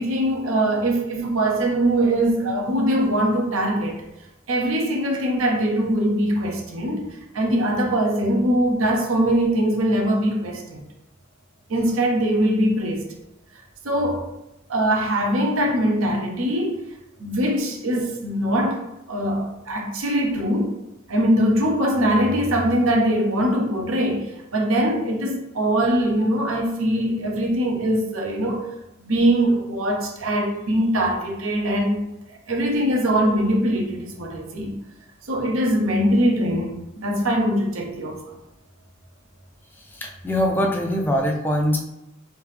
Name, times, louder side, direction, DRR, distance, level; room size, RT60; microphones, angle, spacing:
voice 1, 0.0-4.0 4.5-7.0 7.3-10.8 11.7-13.1 13.8-14.3 14.7-16.8 17.2-20.8 21.1-24.3 24.5-28.6 29.1-32.0 32.3-34.8 35.3-38.2, right 1 dB, 75° right, 1 dB, 0.7 m, -22 dB
voice 2, 39.9-41.8, equal, 10° left, 0 dB, 0.4 m, -22 dB
3.4 x 2.8 x 3.3 m, 0.93 s
head